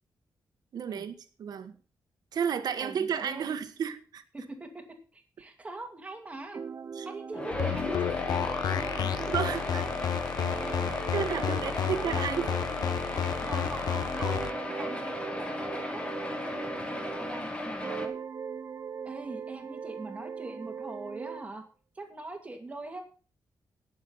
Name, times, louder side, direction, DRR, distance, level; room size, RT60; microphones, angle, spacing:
voice 1, 0.7-1.7 2.3-4.2 6.9-7.1 9.2-9.8 11.1-12.5, right 7 dB, 65° right, 1.5 m, -32 dB
voice 2, 2.8-3.4 4.3-6.6 7.0-10.1 10.5-10.8 11.2-12.7 13.4-18.2 19.0-21.6 21.9-23.0, right 2 dB, 20° right, 2.4 m, -43 dB
sound 1, 6.5-13.7 14.1-17.5 17.8-21.5, right 6 dB, 40° right, 0.8 m, -41 dB
sound 2, 7.3-18.1, left 1 dB, 15° left, 1.9 m, -36 dB
sound 3, 7.5-14.5, left 9 dB, 65° left, 0.6 m, -31 dB
18.5 x 7.3 x 4.1 m
wide cardioid pair, 175°, 7 cm